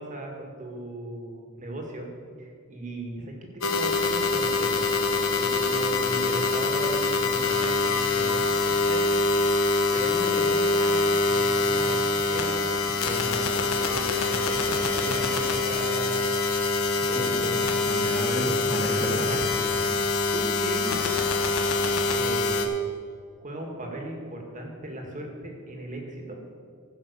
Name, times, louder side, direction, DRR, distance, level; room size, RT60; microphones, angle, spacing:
voice 1, 0.0-2.1 2.4-4.9 5.3-9.5 9.9-16.3 17.1-17.6 19.1-21.1 22.1-22.6 23.4-26.4, right 1 dB, 35° right, 1 dB, 2.0 m, -37 dB
sound 1, 3.6-22.7, left 3 dB, 70° left, 1.2 m, -25 dB
voice 2, 17.1-19.4, equal, 10° left, -3 dB, 2.3 m, -31 dB
15.5 x 5.7 x 6.8 m, 2.1 s
head